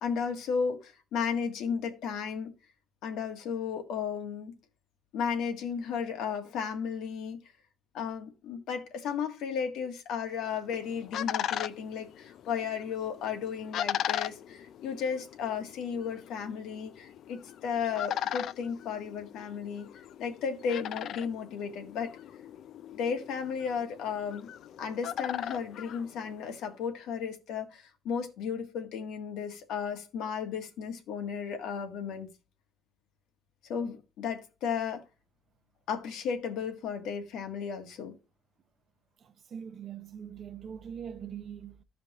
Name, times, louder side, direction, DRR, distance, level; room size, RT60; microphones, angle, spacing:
voice 1, 0.0-2.5 3.0-4.5 5.1-7.4 7.9-19.9 20.2-22.1 22.9-24.5 24.8-32.3 33.7-35.0 35.9-38.1, left 6 dB, 80° left, 1.5 m, -34 dB
sound 1, 10.5-26.7, left 10 dB, 55° left, 0.4 m, -39 dB
voice 2, 39.2-41.8, right 8 dB, 40° right, 0.5 m, -42 dB
14.5 x 5.1 x 2.9 m
cardioid pair, 175°, 0 cm